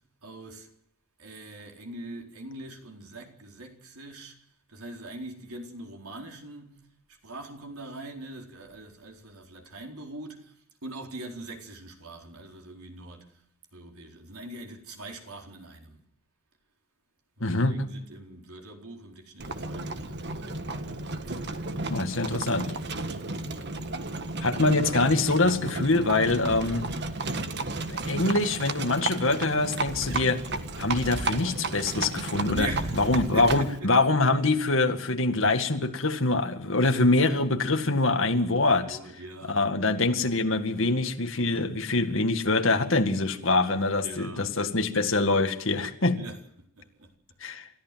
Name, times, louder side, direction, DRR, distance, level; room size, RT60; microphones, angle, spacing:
voice 1, 0.2-0.7 1.2-4.4 4.7-6.8 7.1-10.5 10.8-13.4 13.7-16.0 17.4-20.7 21.3-21.4 32.5-33.9 38.7-39.8 40.1-40.5 44.0-44.5 46.1-46.4 46.8-47.1, right 2 dB, 90° right, 4.2 m, -42 dB
voice 2, 17.4-17.9 21.9-22.7 24.4-26.9 27.9-30.4 30.8-32.7 33.0-39.0 39.5-46.2 47.4-47.7, left 2 dB, 60° left, 2.1 m, -24 dB
Livestock farm animals working animals, 19.4-33.8, right 2 dB, 50° right, 1.6 m, -33 dB
28.5 x 14.0 x 7.6 m
head